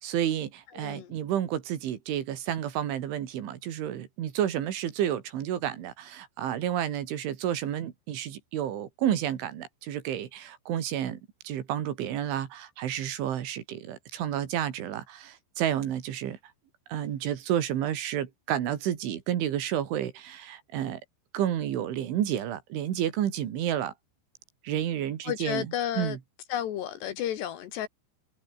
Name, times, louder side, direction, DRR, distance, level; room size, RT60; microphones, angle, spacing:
voice 1, 0.0-11.2 11.4-16.4 16.9-21.0 21.3-23.9 24.6-25.7 26.0-26.2, right 10 dB, 70° right, 4.6 m, -30 dB
voice 2, 0.7-1.2 25.2-26.2 26.5-27.9, left 11 dB, 65° left, 3.2 m, -32 dB
omnidirectional pair, 5.8 m